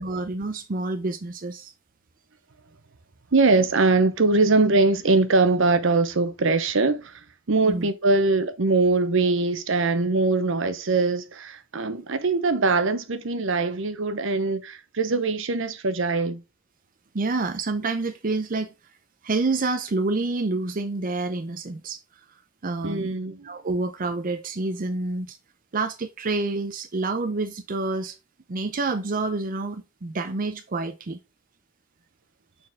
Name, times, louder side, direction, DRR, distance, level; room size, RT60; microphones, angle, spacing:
voice 1, 0.0-1.7 7.6-7.9 17.1-18.7 19.2-22.0 22.6-23.1 23.4-25.4 25.7-28.1 28.5-31.2, right 3 dB, 45° right, 0.6 m, -28 dB
voice 2, 3.3-7.2 7.5-16.4 22.8-23.5, right 3 dB, 70° right, 0.8 m, -22 dB
6.4 x 4.3 x 3.5 m
head